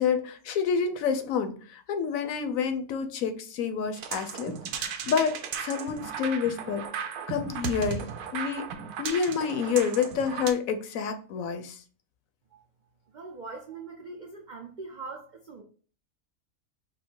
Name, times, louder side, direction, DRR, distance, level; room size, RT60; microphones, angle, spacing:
voice 1, 0.0-6.8 7.3-8.7 9.0-11.8, left 6 dB, 70° left, 1.0 m, -28 dB
sound 1, 3.9-10.5, right 7 dB, 90° right, 1.2 m, -36 dB
voice 2, 13.1-15.6, right 4 dB, 65° right, 0.4 m, -42 dB
5.0 x 2.1 x 4.5 m
omnidirectional pair, 1.6 m